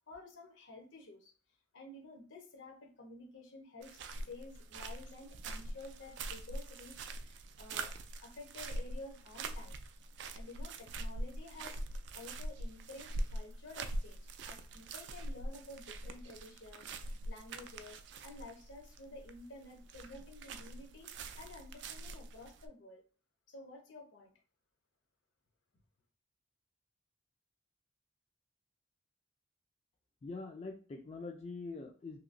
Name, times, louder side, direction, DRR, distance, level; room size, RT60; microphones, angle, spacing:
voice 1, 0.1-1.3 1.7-7.9 8.2-9.7 10.3-11.8 12.1-14.2 14.5-23.0 23.5-24.3, left 2 dB, 80° left, 2 dB, 0.8 m, -52 dB
sound 1, 3.8-22.7, right 2 dB, 65° right, 0.3 m, -43 dB
voice 2, 30.2-32.2, left 3 dB, 35° left, 2 dB, 0.3 m, -44 dB
2.9 x 2.7 x 2.5 m, 0.41 s
head